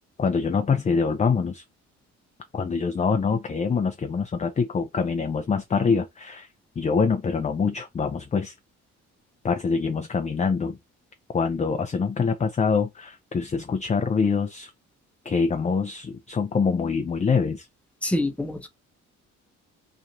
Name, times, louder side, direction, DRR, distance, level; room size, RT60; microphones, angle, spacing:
voice 1, 0.2-1.6 2.5-6.5 6.8-8.5 9.4-10.8 11.3-14.7 15.2-17.7, left 5 dB, 25° left, 0.4 m, -25 dB
voice 2, 18.0-18.7, left 1 dB, 5° left, 0.8 m, -26 dB
2.9 x 2.5 x 3.9 m
cardioid pair, 90°, 30 cm